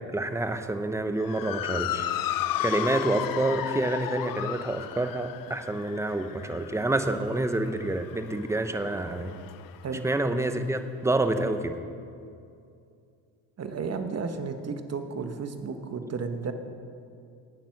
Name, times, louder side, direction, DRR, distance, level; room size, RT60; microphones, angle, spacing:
voice 1, 0.0-2.1 2.6-9.3 10.0-11.8, right 2 dB, 5° right, 8 dB, 0.9 m, -28 dB
Motor vehicle (road) / Siren, 1.2-9.8, left 12 dB, 60° left, 0.7 m, -34 dB
voice 2, 13.6-16.5, right 5 dB, 40° right, 7 dB, 1.3 m, -33 dB
19.0 x 7.3 x 6.0 m, 2.5 s
supercardioid pair, 85°, 39 cm